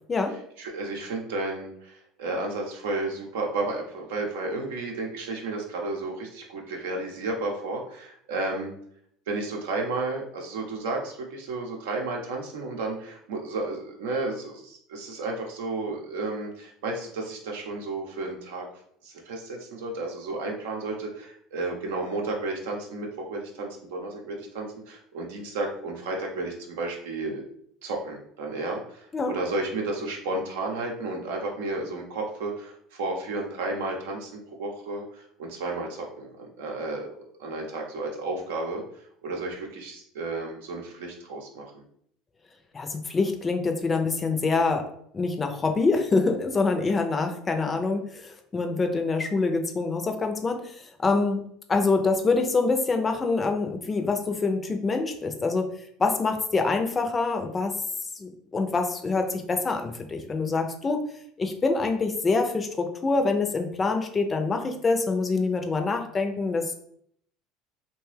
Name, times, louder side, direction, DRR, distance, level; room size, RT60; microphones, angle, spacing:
voice 1, 0.6-8.7 9.3-18.7 19.0-27.4 27.8-37.1 37.4-41.8, right 2 dB, 90° right, 1 dB, 0.7 m, -32 dB
voice 2, 42.7-44.9 45.1-51.4 51.7-55.7 56.0-57.7 58.2-61.0 61.4-66.7, left 3 dB, 25° left, 5 dB, 0.4 m, -25 dB
2.8 x 2.2 x 3.2 m, 0.67 s
supercardioid pair, 100°, 0 cm